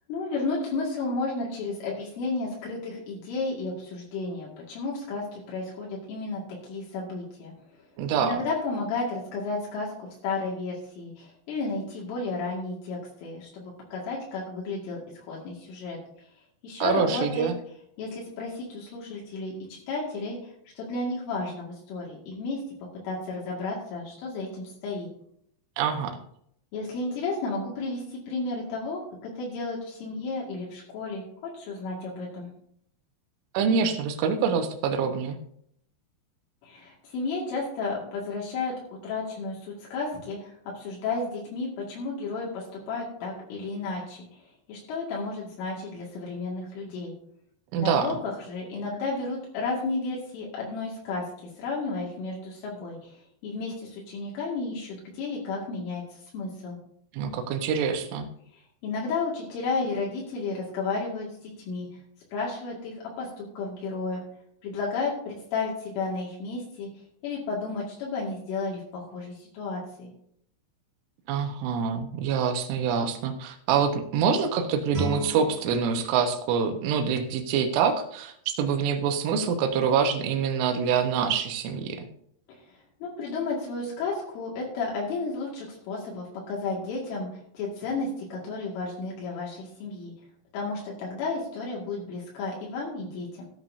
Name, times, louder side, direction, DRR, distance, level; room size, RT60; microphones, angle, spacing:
voice 1, 0.1-7.5 8.2-15.0 15.3-16.3 16.6-17.5 18.0-22.6 23.0-25.1 26.7-32.5 36.6-38.7 39.0-47.1 47.8-56.8 58.8-61.9 62.3-64.2 64.6-66.9 67.2-70.1 82.5-87.3 87.5-90.1 90.5-93.4, left 3 dB, 75° left, -4 dB, 4.6 m, -33 dB
voice 2, 8.0-8.4 16.8-17.6 25.8-26.2 33.6-35.4 47.7-48.2 57.1-58.3 71.3-82.1, right 6 dB, 80° right, 5 dB, 3.5 m, -25 dB
Guitar, 74.9-77.7, right 3 dB, 50° right, 1.5 m, -36 dB
15.0 x 10.5 x 2.7 m, 0.70 s
omnidirectional pair, 5.7 m